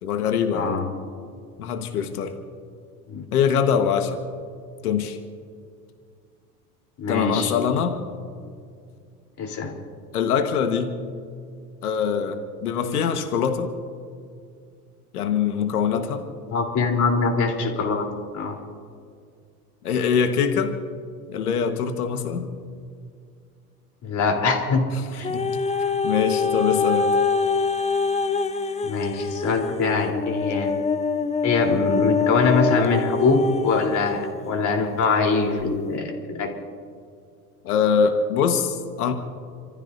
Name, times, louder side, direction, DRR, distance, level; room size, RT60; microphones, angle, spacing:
voice 1, 0.0-0.8 1.6-2.4 3.3-4.2 4.8-5.2 7.1-8.0 10.1-11.0 11.8-13.7 15.1-16.3 19.8-20.7 21.3-22.5 25.3-25.5 25.9-27.1 37.6-39.1, left 7 dB, 80° left, 6 dB, 1.6 m, -23 dB
voice 2, 0.5-0.9 3.1-3.3 7.0-7.5 9.4-9.7 16.5-18.1 18.3-18.6 24.0-25.4 28.8-30.8 31.4-36.6, left 4 dB, 40° left, 1 dB, 3.9 m, -23 dB
sound 1, 25.2-34.3 35.0-35.1, left 4 dB, 15° left, 1.0 m, -25 dB
29.5 x 15.0 x 2.7 m, 2.2 s
hypercardioid pair, 80°, 45 cm